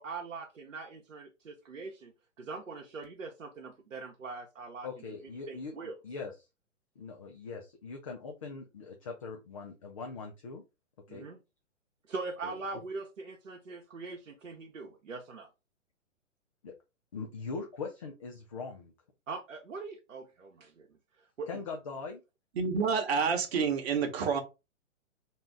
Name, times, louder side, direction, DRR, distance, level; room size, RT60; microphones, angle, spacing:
voice 1, 0.0-2.1 2.4-4.9 5.5-6.0 11.1-11.4 12.1-15.5 19.3-20.9 21.4-21.5, right 4 dB, 85° right, 0.8 m, -42 dB
voice 2, 4.8-5.7 6.0-6.5 7.0-10.6 11.1-11.3 12.4-12.8 16.6-16.7 17.1-18.9 21.5-22.2, left 4 dB, 30° left, 0.4 m, -41 dB
voice 3, 22.6-24.4, right 5 dB, 55° right, 1.0 m, -28 dB
2.7 x 2.3 x 3.3 m
hypercardioid pair, 135°, 38 cm